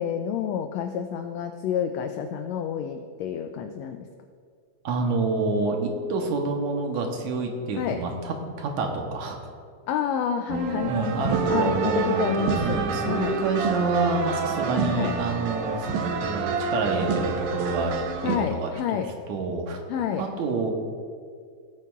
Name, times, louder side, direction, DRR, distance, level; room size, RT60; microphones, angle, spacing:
voice 1, 0.0-4.1 7.8-8.0 9.9-13.4 14.9-15.1 18.2-19.1 19.9-20.3, left 8 dB, 85° left, 6 dB, 1.5 m, -29 dB
voice 2, 4.8-9.4 10.8-15.9 16.2-19.0 19.3-19.8 20.2-20.7, right 3 dB, 75° right, 2 dB, 2.3 m, -28 dB
sound 1, 10.5-18.4, right 5 dB, 90° right, 2.4 m, -27 dB
18.0 x 9.2 x 2.4 m, 2.1 s
omnidirectional pair, 3.6 m